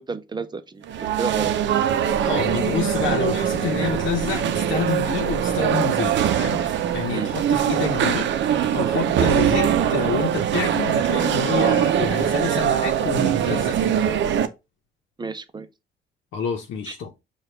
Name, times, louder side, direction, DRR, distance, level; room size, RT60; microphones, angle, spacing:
voice 1, 0.0-1.5 2.5-3.0 7.1-7.3 15.2-15.7 16.9-17.0, right 4 dB, 20° right, 0.6 m, -32 dB
sound 1, 0.8-14.5, right 9 dB, 65° right, 0.6 m, -22 dB
voice 2, 2.2-14.0 16.3-17.1, left 7 dB, 75° left, 0.8 m, -28 dB
4.9 x 2.4 x 4.4 m
cardioid pair, 90°, 20 cm